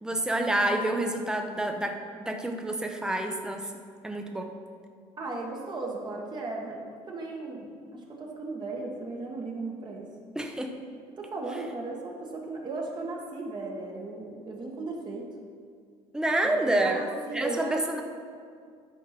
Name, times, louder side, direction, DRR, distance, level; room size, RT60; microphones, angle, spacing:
voice 1, 0.0-3.7 4.0-4.5 10.3-10.8 16.1-17.0 17.3-18.0, right 1 dB, 5° right, 4 dB, 0.7 m, -28 dB
voice 2, 5.2-10.1 11.2-15.3 16.4-18.0, right 3 dB, 35° right, -2 dB, 1.5 m, -36 dB
10.5 x 4.5 x 5.9 m, 2.2 s
cardioid pair, 110°, 13 cm